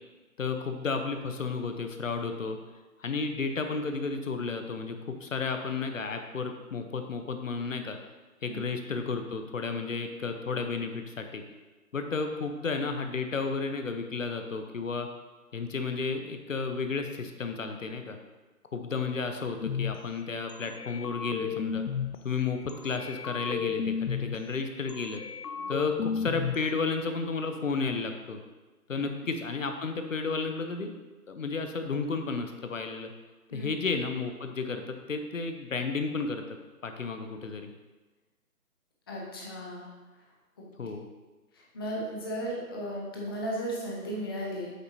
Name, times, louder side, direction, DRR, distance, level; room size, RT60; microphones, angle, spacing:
voice 1, 0.4-2.6 3.0-8.0 8.4-11.4 11.9-15.1 15.5-18.2 18.7-21.8 22.2-25.2 25.7-28.4 28.9-30.9 31.3-33.1 33.5-36.4 36.8-37.7 40.8-41.1, left 4 dB, 55° left, 6 dB, 0.8 m, -32 dB
sound 1, 19.6-19.9 20.5-22.2 22.7-24.4 24.9-26.6, left 7 dB, 85° left, 0.7 m, -33 dB
voice 2, 39.1-39.9 40.6-40.7 41.5-44.7, equal, 15° left, -4 dB, 0.8 m, -35 dB
8.2 x 7.9 x 2.8 m, 1.2 s
figure-of-eight pair, 150°, 46 cm